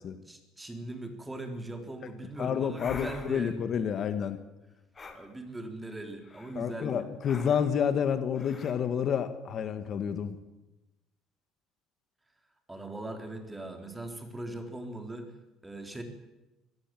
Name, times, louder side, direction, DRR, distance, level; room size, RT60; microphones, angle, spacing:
voice 1, 0.0-3.7 5.1-7.1 12.7-15.3 15.6-16.0, right 1 dB, 10° right, 6 dB, 3.7 m, -40 dB
voice 2, 2.4-4.4 6.5-10.4, left 7 dB, 45° left, 10 dB, 1.7 m, -29 dB
sound 1, 2.7-3.5 4.9-5.2 6.2-6.6 7.2-7.8 8.3-8.7, left 4 dB, 25° left, 3.2 m, -45 dB
25.0 x 18.0 x 7.8 m, 1.0 s
cardioid pair, 120°, 0 cm